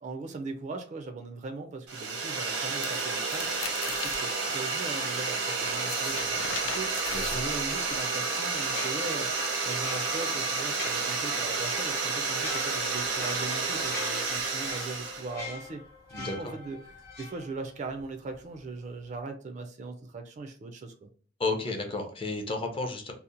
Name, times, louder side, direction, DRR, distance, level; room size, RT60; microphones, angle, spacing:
voice 1, 0.0-3.6 3.9-15.8 16.2-21.1, right 3 dB, 40° right, 6 dB, 0.3 m, -39 dB
sound 1, 1.9-15.3, right 4 dB, 85° right, 0.7 m, -30 dB
sound 2, 2.7-4.2 5.7-8.0, left 6 dB, 85° left, 0.4 m, -39 dB
sound 3, 8.6-18.0 18.3-18.5, left 3 dB, 50° left, 0.9 m, -43 dB
voice 2, 21.4-23.1, left 3 dB, 30° left, 3 dB, 0.5 m, -32 dB
2.7 x 2.0 x 2.4 m, 0.44 s
head